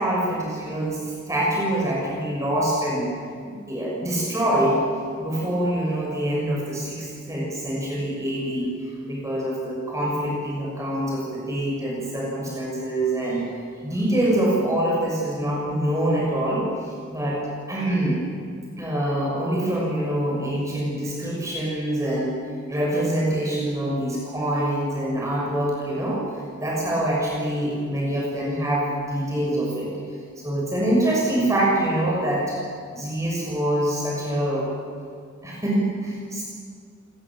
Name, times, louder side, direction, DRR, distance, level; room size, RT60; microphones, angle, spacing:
voice 1, 0.0-3.1 3.4-4.8 5.2-13.5 13.8-16.6 17.1-17.4 17.7-18.2 18.8-22.3 22.7-29.9 30.4-32.6 32.9-34.7 35.4-36.4, right 1 dB, 15° right, -4 dB, 6.3 m, -25 dB
27.5 x 19.5 x 7.6 m, 2.2 s
head